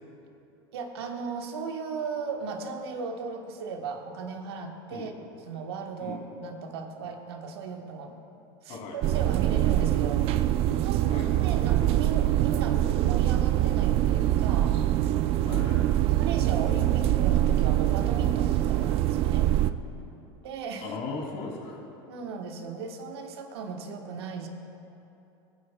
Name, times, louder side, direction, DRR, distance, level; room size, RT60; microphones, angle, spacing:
voice 1, 0.7-5.1 5.4-8.2 8.6-14.8 16.2-19.5 20.4-20.9 22.1-24.5, right 5 dB, 80° right, 3 dB, 1.3 m, -36 dB
sound 1, 9.0-19.7, right 13 dB, 50° right, 0.4 m, -24 dB
voice 2, 15.4-15.8 20.8-21.8, left 4 dB, 50° left, -2 dB, 2.9 m, -37 dB
22.0 x 9.4 x 2.3 m, 2.8 s
hypercardioid pair, 105°, 13 cm